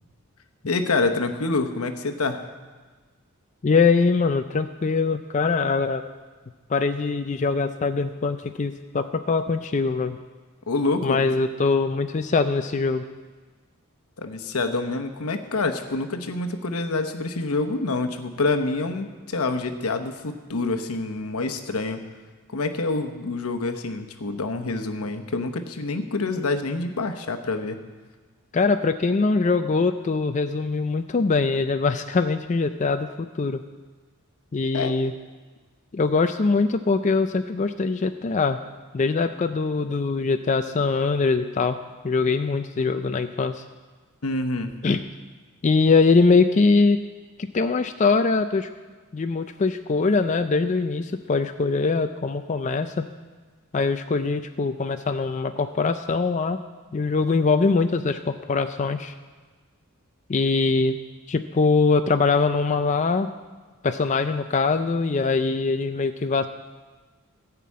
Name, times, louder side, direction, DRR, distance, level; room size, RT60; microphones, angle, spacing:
voice 1, 0.7-2.4 10.7-11.2 14.2-22.0 22.5-27.8 34.7-35.0 44.2-44.7, left 3 dB, 85° left, 6 dB, 1.0 m, -27 dB
voice 2, 3.6-6.0 6.7-10.2 11.0-13.0 28.5-33.6 34.5-35.1 35.9-38.6 38.9-41.8 42.0-43.6 44.8-45.0 45.6-47.0 47.5-48.7 49.1-53.1 53.7-56.6 56.9-59.1 60.3-61.0 61.3-63.3 63.8-66.5, left 4 dB, 35° left, 8 dB, 0.4 m, -22 dB
14.5 x 5.9 x 8.5 m, 1.4 s
head